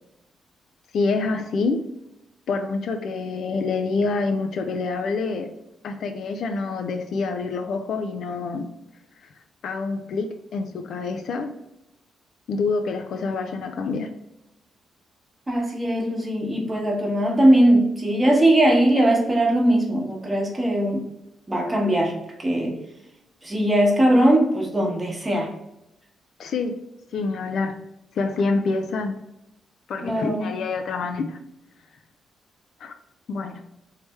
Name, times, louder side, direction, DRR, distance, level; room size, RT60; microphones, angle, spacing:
voice 1, 0.9-1.9 2.5-5.5 5.8-8.7 9.6-10.3 10.5-11.5 12.5-14.1 26.4-26.7 27.1-27.8 28.1-29.1 29.9-31.4 32.8-32.9 33.3-33.6, left 4 dB, 65° left, 7 dB, 0.4 m, -26 dB
voice 2, 15.5-21.0 21.5-22.1 22.4-22.7 23.4-25.5 30.0-30.5, right 1 dB, 15° right, 0 dB, 1.0 m, -20 dB
3.3 x 3.3 x 4.1 m, 0.87 s
cardioid pair, 140°, 0 cm